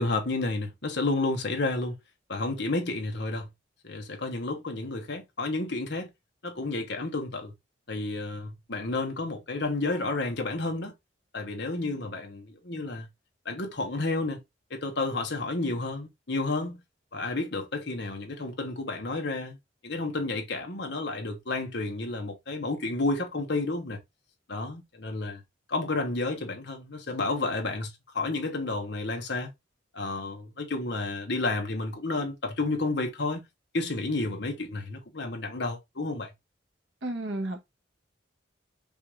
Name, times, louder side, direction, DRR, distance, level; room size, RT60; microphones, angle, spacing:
voice 1, 0.0-2.0 2.3-3.5 3.8-6.1 6.4-7.5 7.9-10.9 11.3-13.1 13.4-14.4 14.7-16.8 17.1-19.6 19.8-24.0 24.5-25.4 25.7-29.5 29.9-33.4 33.7-36.3, left 2 dB, 60° left, 1.2 m, -31 dB
voice 2, 37.0-37.6, right 1 dB, 70° right, 1.2 m, -32 dB
5.4 x 2.6 x 3.1 m
head